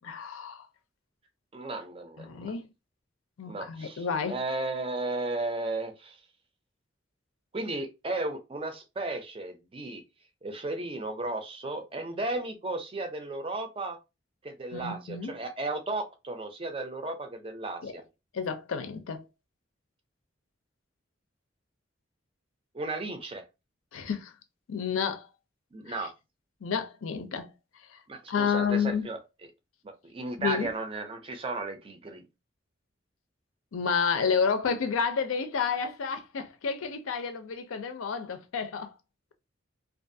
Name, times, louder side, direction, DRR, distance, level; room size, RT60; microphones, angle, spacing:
voice 1, 0.0-0.7 2.2-2.6 3.4-4.4 14.7-15.3 17.8-18.0 18.3-19.2 23.9-24.3 24.7-25.3 25.9-26.1 26.6-27.5 27.9-28.0 28.3-29.1 30.4-30.7 33.7-38.9, left 6 dB, 90° left, 0.5 m, -30 dB
voice 2, 1.5-2.5 3.5-6.2 7.5-10.0 10.4-14.0 14.4-18.0 22.7-23.5 25.7-26.1 28.1-29.2 29.8-32.2, right 2 dB, 25° right, 0.4 m, -34 dB
2.5 x 2.3 x 2.6 m
head